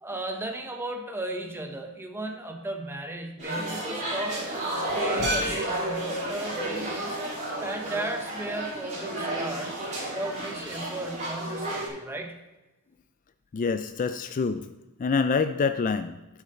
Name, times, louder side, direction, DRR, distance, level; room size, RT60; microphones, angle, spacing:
voice 1, 0.0-4.4 5.0-7.2 7.6-9.8 10.1-12.4, right 1 dB, 10° right, 4 dB, 0.9 m, -35 dB
sound 1, 3.4-11.9, right 1 dB, 35° right, 3.7 m, -31 dB
sound 2, 4.4-8.5, left 2 dB, 60° left, 1.2 m, -40 dB
voice 2, 5.2-5.6 13.5-14.7 15.0-16.2, left 5 dB, 35° left, 10 dB, 0.3 m, -26 dB
8.4 x 8.2 x 4.3 m, 1.1 s
head